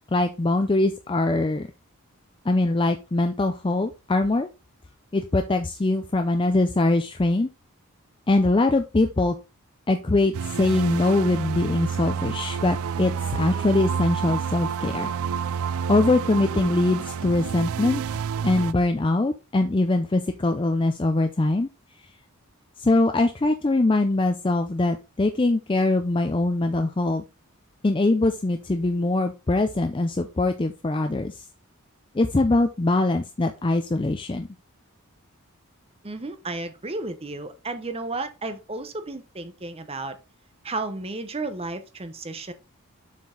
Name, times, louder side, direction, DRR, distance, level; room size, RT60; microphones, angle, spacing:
voice 1, 0.1-1.7 2.5-4.5 5.1-7.5 8.3-9.3 9.9-15.1 15.9-18.0 18.4-21.7 22.8-27.2 27.8-31.5 32.1-34.5, left 2 dB, 20° left, 0.4 m, -22 dB
sound 1, 10.3-18.7, right 7 dB, 70° right, 0.3 m, -29 dB
voice 2, 36.0-40.2 40.6-42.5, right 2 dB, 25° right, 0.8 m, -33 dB
7.3 x 4.5 x 3.8 m
head